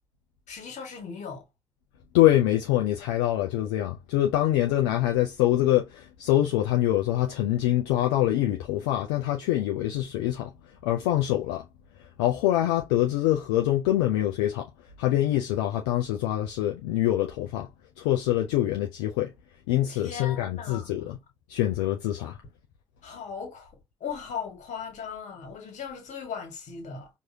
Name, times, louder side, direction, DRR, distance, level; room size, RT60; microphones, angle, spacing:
voice 1, 0.5-1.4 19.9-21.0 23.0-27.1, left 6 dB, 60° left, 1.6 m, -38 dB
voice 2, 2.1-10.5 10.8-11.6 12.2-14.7 15.0-17.7 18.0-19.3 19.7-21.2 21.5-22.4, left 13 dB, 80° left, 0.4 m, -25 dB
4.6 x 2.6 x 2.7 m
hypercardioid pair, 40°, 14 cm